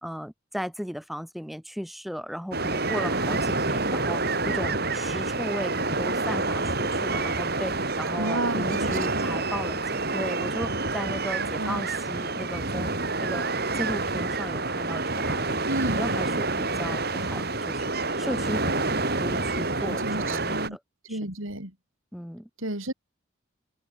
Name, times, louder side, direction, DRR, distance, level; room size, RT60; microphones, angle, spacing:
voice 1, 0.0-12.9 13.2-13.5 13.7-15.6 15.9-20.8 21.1-21.2 22.1-22.5, equal, ahead, 3.2 m, -36 dB
sound 1, 2.5-20.7, right 3 dB, 50° right, 4.6 m, -28 dB
voice 2, 8.2-9.0 11.4-11.8 15.6-16.1 17.0-17.5 19.8-20.8 21.0-21.7 22.6-22.9, right 1 dB, 80° right, 6.1 m, -32 dB
head